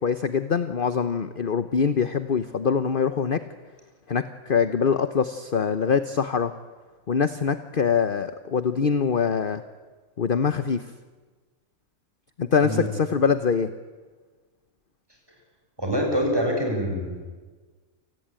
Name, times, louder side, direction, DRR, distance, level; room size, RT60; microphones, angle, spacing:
voice 1, 0.0-3.4 4.1-6.5 7.1-9.6 10.2-10.9 12.4-13.7, left 6 dB, 40° left, 12 dB, 1.1 m, -24 dB
voice 2, 15.8-17.3, equal, 15° right, 0 dB, 7.6 m, -25 dB
28.5 x 20.0 x 9.0 m, 1.4 s
omnidirectional pair, 1.5 m